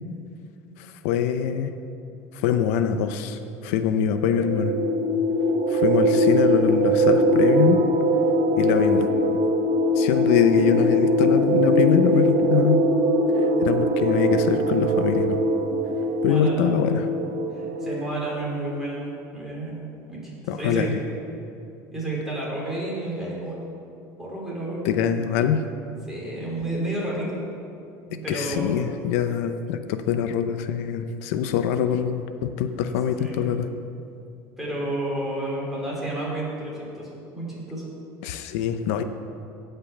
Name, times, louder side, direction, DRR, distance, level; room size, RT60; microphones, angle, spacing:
voice 1, 0.8-1.7 2.3-4.8 5.7-7.8 8.6-9.1 10.0-12.8 13.6-15.4 16.2-17.1 20.5-21.0 24.8-25.6 28.3-33.7 38.2-39.0, left 8 dB, 85° left, 8 dB, 0.7 m, -23 dB
sound 1, 4.1-18.5, equal, 55° right, 1.2 m, -22 dB
voice 2, 16.2-16.8 17.5-19.8 20.1-20.9 21.9-23.6 24.2-25.0 26.1-27.4 28.1-28.6 33.2-33.4 34.6-37.1 37.3-37.9, right 1 dB, 5° right, -6 dB, 3.3 m, -31 dB
16.5 x 5.6 x 7.1 m, 2.6 s
cardioid pair, 175°, 8 cm